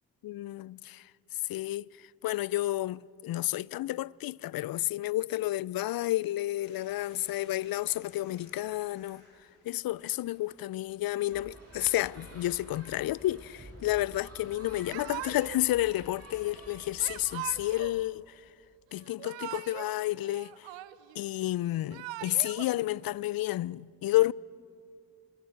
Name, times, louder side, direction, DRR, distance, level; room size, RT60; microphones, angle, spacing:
voice 1, 0.2-9.2 9.6-18.3 18.9-20.7 21.2-24.3, left 15 dB, 55° left, 0.5 m, -31 dB
sound 1, 6.6-15.2, left 2 dB, 90° left, 6.1 m, -63 dB
sound 2, 11.3-17.9, right 1 dB, 35° right, 7.6 m, -50 dB
Yell / Crying sobbing, 14.9-15.7 17.0-18.0 19.0-19.9 20.2-21.2 21.7-22.7, right 15 dB, 75° right, 0.7 m, -41 dB
26.5 x 21.0 x 4.6 m
hypercardioid pair, 45°, 45 cm